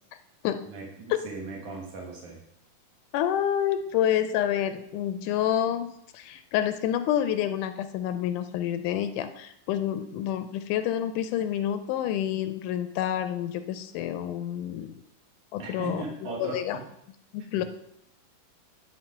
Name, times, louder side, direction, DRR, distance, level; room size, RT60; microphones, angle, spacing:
voice 1, 0.7-2.4 15.6-16.6 17.4-17.6, right 3 dB, 70° right, -2 dB, 2.8 m, -38 dB
voice 2, 3.1-14.9 15.5-16.0 16.4-16.8 17.3-17.6, left 10 dB, 80° left, 10 dB, 2.0 m, -28 dB
11.0 x 4.2 x 5.7 m, 0.76 s
omnidirectional pair, 3.8 m